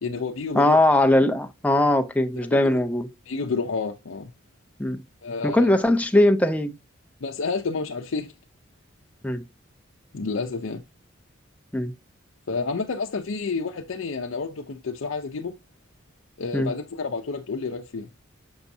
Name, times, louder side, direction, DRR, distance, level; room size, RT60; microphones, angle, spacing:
voice 1, 0.0-0.8 2.4-2.7 3.3-4.3 5.2-5.7 7.2-8.3 10.1-10.8 12.5-15.5 16.4-18.1, left 4 dB, 75° left, 0.6 m, -30 dB
voice 2, 0.5-3.1 4.8-5.0 5.4-6.8 9.2-9.4 11.7-11.9 16.5-16.7, left 1 dB, 5° left, 0.4 m, -20 dB
7.0 x 5.5 x 2.6 m
head